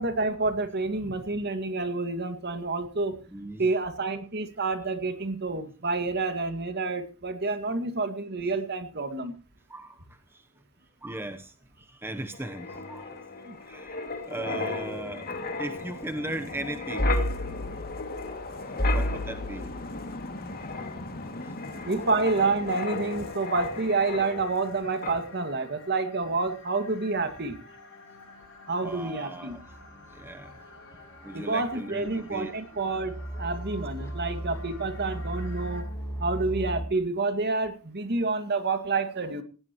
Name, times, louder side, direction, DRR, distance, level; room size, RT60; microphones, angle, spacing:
voice 1, 0.0-3.2 3.6-9.3 13.5-13.6 21.9-27.6 28.7-29.6 31.3-35.9 36.2-39.4, right 3 dB, 50° right, 9 dB, 2.1 m, -28 dB
voice 2, 3.3-3.7 9.7-10.0 10.3-10.4 11.0-14.0 14.3-17.1 18.9-19.7 28.8-29.6 30.1-30.5 31.2-32.5, right 1 dB, 10° right, 7 dB, 0.9 m, -38 dB
Wind, 12.3-24.7 25.0-25.3, left 2 dB, 45° left, 2.4 m, -33 dB
sound 1, 21.6-35.8, left 4 dB, 60° left, 5.7 m, -50 dB
sound 2, 29.6-36.8, right 1 dB, 15° left, 6.0 m, -38 dB
19.0 x 17.5 x 3.1 m, 0.35 s
head